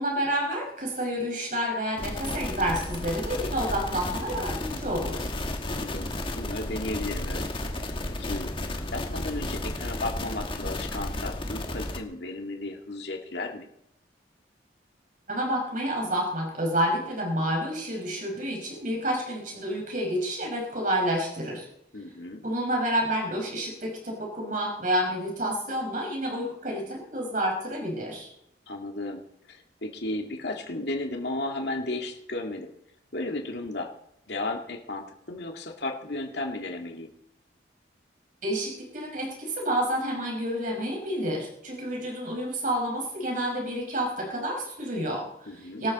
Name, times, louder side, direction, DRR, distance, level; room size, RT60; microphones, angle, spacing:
voice 1, 0.0-5.3 15.3-21.7 22.4-28.3 38.4-45.9, equal, 45° right, -1 dB, 5.7 m, -29 dB
sound 1, 2.0-12.0, left 1 dB, 30° left, 1.6 m, -33 dB
voice 2, 5.7-7.6 8.2-8.5 8.9-13.7 21.9-22.4 28.7-29.2 29.5-32.7 33.1-33.9 34.3-37.1 45.5-45.8, left 2 dB, 65° left, 2 dB, 2.3 m, -34 dB
25.0 x 13.0 x 4.3 m, 0.79 s
head